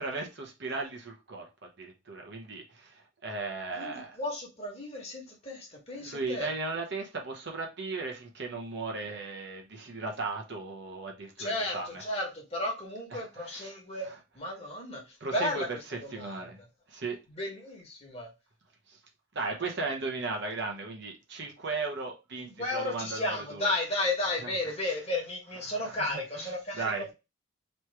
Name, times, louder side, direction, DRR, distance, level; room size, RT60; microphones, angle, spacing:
voice 1, 0.0-4.2 6.0-12.0 13.1-13.7 14.0-14.1 15.2-16.6 16.9-17.2 18.9-19.0 19.3-23.7 24.4-24.5 24.8-25.0 25.6-27.0, right 3 dB, 55° right, 1.0 m, -37 dB
voice 2, 3.7-6.5 11.4-14.1 14.3-15.7 16.0-16.4 17.3-18.3 22.4-27.1, left 1 dB, 30° left, 1.3 m, -33 dB
3.2 x 3.0 x 4.6 m
head